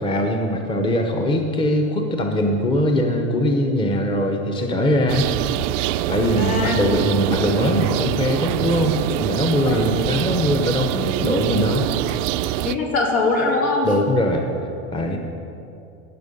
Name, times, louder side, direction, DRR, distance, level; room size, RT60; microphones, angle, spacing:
voice 1, 0.0-5.3 6.1-12.2 13.8-14.5 14.9-15.2, left 1 dB, 10° left, 3 dB, 0.8 m, -21 dB
sound 1, 5.1-12.8, right 14 dB, 65° right, 0.5 m, -24 dB
voice 2, 6.4-6.8 9.6-9.8 12.6-13.9, left 3 dB, 75° left, -1 dB, 3.1 m, -21 dB
17.5 x 6.3 x 5.4 m, 2.7 s
supercardioid pair, 125°, 42 cm